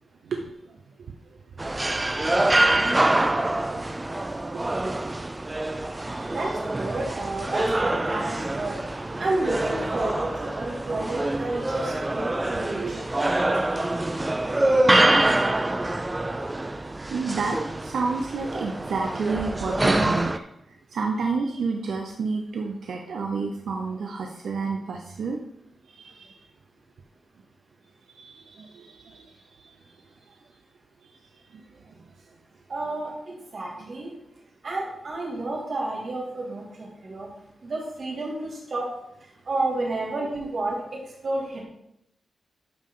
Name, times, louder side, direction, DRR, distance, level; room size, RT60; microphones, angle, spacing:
voice 1, 0.2-0.8 2.1-2.2 6.1-6.5 12.8-12.9 17.1-20.4 20.9-25.4 25.9-26.4 28.1-29.8 31.5-31.6 33.9-34.0, right 4 dB, 75° right, 2 dB, 0.7 m, -30 dB
sound 1, 1.6-20.4, right 1 dB, 15° right, 0.4 m, -25 dB
voice 2, 1.8-2.4 6.2-8.8 9.2-13.5 32.7-34.1 34.6-37.3 37.6-38.9 39.5-41.6, right 2 dB, 40° right, -2 dB, 2.5 m, -31 dB
11.5 x 5.3 x 3.8 m, 0.80 s
wide cardioid pair, 175°, 0 cm